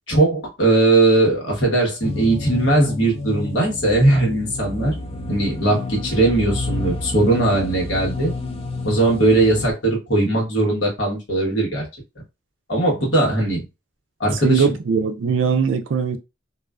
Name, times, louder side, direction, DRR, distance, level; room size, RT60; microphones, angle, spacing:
voice 1, 0.1-4.9 5.3-8.3 8.8-11.8 12.7-13.6 14.2-14.8, right 2 dB, 85° left, 1.1 m, -19 dB
sound 1, 2.0-9.7, left 2 dB, 30° left, 0.3 m, -29 dB
voice 2, 14.4-16.2, right 6 dB, 85° right, 0.4 m, -20 dB
2.4 x 2.2 x 2.3 m
head